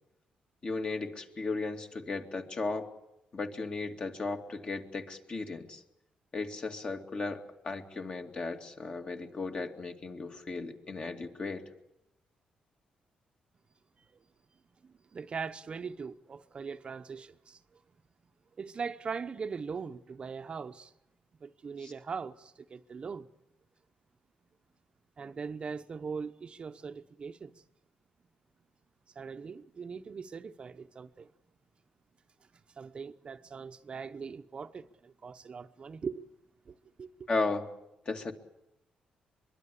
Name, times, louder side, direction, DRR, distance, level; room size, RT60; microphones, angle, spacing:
voice 1, 0.6-2.9 3.3-5.8 6.3-11.6 21.8-21.9 37.3-37.7 38.1-38.3, left 3 dB, 40° left, 2.3 m, -35 dB
voice 2, 14.8-17.8 18.6-20.9 21.4-23.3 25.2-27.6 29.1-31.3 32.8-36.2 36.7-37.3, right 5 dB, 40° right, 0.9 m, -41 dB
23.5 x 23.0 x 8.4 m
cardioid pair, 110°, 3 cm